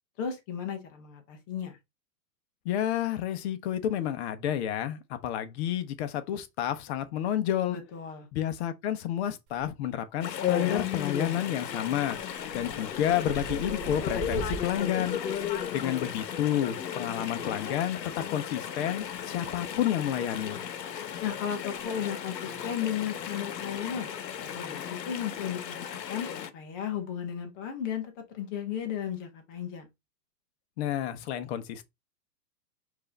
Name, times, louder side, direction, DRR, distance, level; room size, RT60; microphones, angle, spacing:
voice 1, 0.2-1.8 7.7-8.3 21.2-24.1 24.5-26.3 26.5-29.9, left 9 dB, 15° left, 0.4 m, -35 dB
voice 2, 2.6-7.8 8.3-12.2 12.5-15.2 15.7-20.6 30.8-31.8, left 11 dB, 40° left, 0.8 m, -30 dB
sound 1, 9.5-10.0 10.4-10.9 11.2-11.5 11.8-16.3 17.6-17.8 19.0-19.8 20.1-20.3 20.8-20.9 21.2-21.3 21.6-21.8 22.1-22.2 23.8-24.0, right 6 dB, 30° right, 1.1 m, -42 dB
Chatter / Stream, 10.2-26.5, left 9 dB, 85° left, 1.0 m, -35 dB
4.7 x 2.6 x 4.1 m
hypercardioid pair, 135°, 49 cm